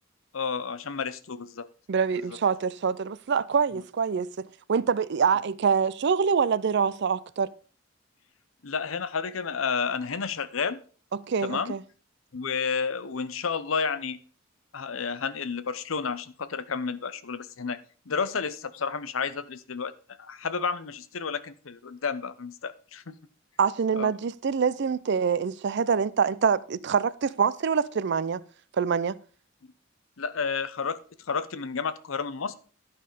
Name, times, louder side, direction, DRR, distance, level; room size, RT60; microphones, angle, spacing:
voice 1, 0.3-1.7 2.3-2.4 8.6-10.8 11.4-11.7 12.3-14.2 14.7-17.8 18.1-19.9 20.2-23.1 24.0-24.1 30.2-32.5, left 5 dB, 85° left, 0.7 m, -31 dB
voice 2, 1.9-7.5 11.1-11.8 23.6-28.4 28.8-29.2, right 6 dB, 60° right, 0.5 m, -25 dB
11.5 x 5.5 x 5.0 m
head